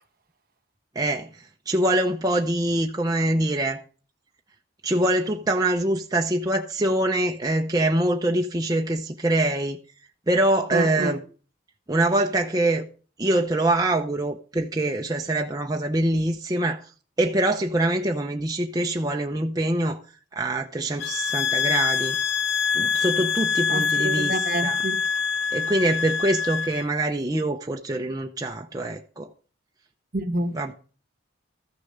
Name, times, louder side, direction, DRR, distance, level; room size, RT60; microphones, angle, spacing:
voice 1, 1.0-3.8 4.8-9.8 10.3-11.2 11.9-12.9 13.2-16.9 17.2-20.0 20.3-22.2 22.7-24.8 25.5-29.3 30.5-30.7, right 1 dB, 20° right, 0.6 m, -24 dB
voice 2, 10.7-11.2 23.7-25.0 30.1-30.5, right 1 dB, 45° right, 1.1 m, -28 dB
sound 1, 21.0-26.8, left 6 dB, 60° left, 0.5 m, -25 dB
14.0 x 6.5 x 6.5 m
head